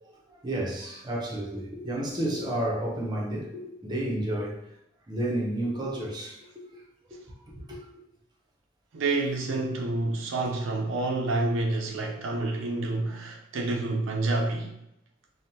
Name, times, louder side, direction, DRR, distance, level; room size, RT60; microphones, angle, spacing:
voice 1, 0.0-4.6 5.1-6.8 7.1-7.2 7.6-7.8, right 1 dB, 20° right, 0.6 m, -31 dB
voice 2, 8.9-14.8, right 2 dB, 75° right, 0.4 m, -28 dB
3.4 x 2.0 x 2.8 m
head